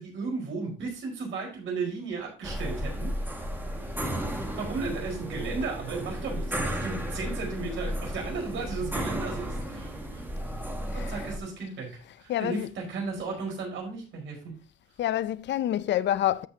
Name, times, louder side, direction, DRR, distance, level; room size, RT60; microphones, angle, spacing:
voice 1, 0.0-3.5 4.5-10.3 10.9-14.5, right 4 dB, 70° right, 4.7 m, -35 dB
sound 1, 2.4-11.4, equal, 10° right, 1.9 m, -33 dB
voice 2, 12.3-12.7 15.0-16.5, left 12 dB, 65° left, 0.5 m, -27 dB
13.5 x 5.8 x 2.8 m
cardioid pair, 90°, 20 cm